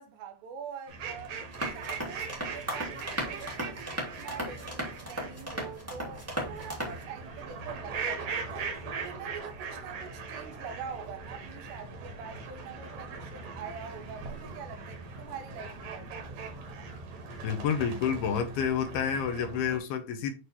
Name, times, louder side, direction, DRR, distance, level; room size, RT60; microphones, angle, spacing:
voice 1, 0.0-1.4 1.7-8.7 9.0-16.9, right 6 dB, 80° right, 3.3 m, -44 dB
sound 1, 0.9-19.8, right 4 dB, 60° right, 2.7 m, -40 dB
sound 2, 1.5-7.0, equal, 10° right, 0.9 m, -36 dB
voice 2, 17.4-20.3, left 7 dB, 75° left, 2.6 m, -29 dB
8.4 x 3.1 x 4.1 m
omnidirectional pair, 4.8 m